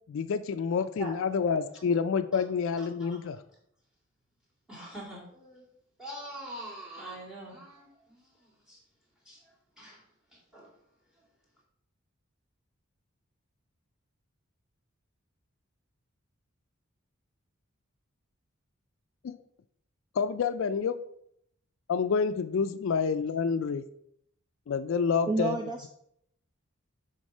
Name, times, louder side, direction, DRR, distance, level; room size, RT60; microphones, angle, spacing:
voice 1, 0.1-3.4 19.2-19.4 20.2-21.0 21.9-23.8 24.7-25.6, left 6 dB, 65° left, 11 dB, 0.3 m, -28 dB
voice 2, 4.7-5.7 6.0-8.8 9.2-9.5 9.8-10.0 10.3-10.7, right 1 dB, 5° right, -3 dB, 2.5 m, -44 dB
voice 3, 25.3-25.9, right 3 dB, 20° right, 5 dB, 0.4 m, -30 dB
6.2 x 4.0 x 5.4 m, 0.72 s
head